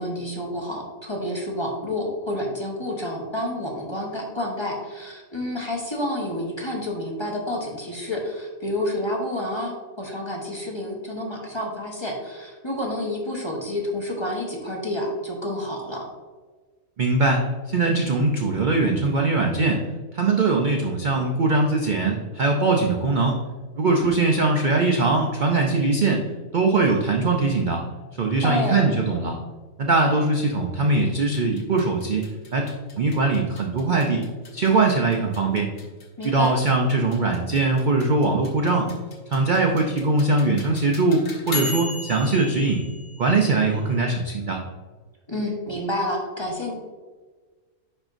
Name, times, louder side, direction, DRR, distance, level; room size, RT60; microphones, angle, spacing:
voice 1, 0.0-16.1 24.0-24.2 28.4-28.9 36.2-36.5 45.3-46.7, left 1 dB, 20° left, -2 dB, 1.0 m, -29 dB
voice 2, 17.0-19.8 20.1-23.4 23.8-26.2 26.5-27.8 28.2-29.4 29.8-34.2 34.5-35.7 36.2-38.9 39.3-42.8 43.2-44.6, right 3 dB, 50° right, 1 dB, 0.6 m, -21 dB
sound 1, 31.3-44.0, left 3 dB, 65° left, 1.6 m, -38 dB
10.0 x 4.4 x 2.6 m, 1.4 s
omnidirectional pair, 1.5 m